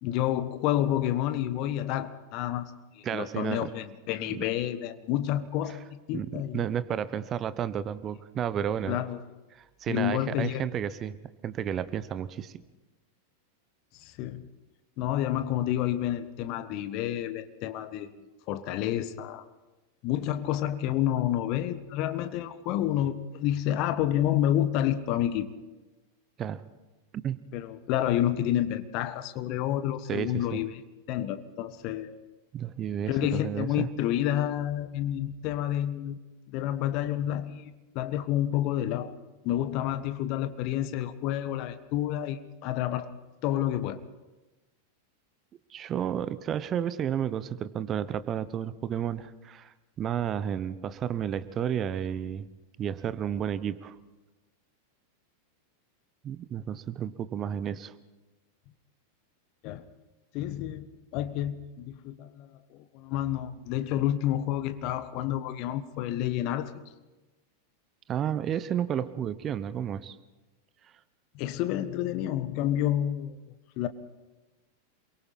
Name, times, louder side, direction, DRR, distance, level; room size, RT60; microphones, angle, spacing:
voice 1, 0.0-6.6 8.9-9.2 9.9-10.6 14.0-14.5 15.0-18.1 18.5-19.4 20.0-25.5 27.5-30.8 31.1-32.1 33.1-36.2 36.5-39.1 39.4-43.1 43.4-44.0 59.6-59.8 60.3-60.9 61.1-66.7 71.3-73.4 73.8-73.9, left 12 dB, 40° left, 11 dB, 1.3 m, -29 dB
voice 2, 3.0-3.7 4.3-4.4 6.1-9.0 9.5-11.2 11.4-12.6 26.4-26.6 27.2-27.4 30.1-30.6 32.5-33.9 45.7-52.5 52.8-53.9 56.2-57.9 68.1-70.2, right 9 dB, 30° right, 15 dB, 0.9 m, -32 dB
28.0 x 23.0 x 4.3 m, 1.1 s
figure-of-eight pair, 90°, 0 cm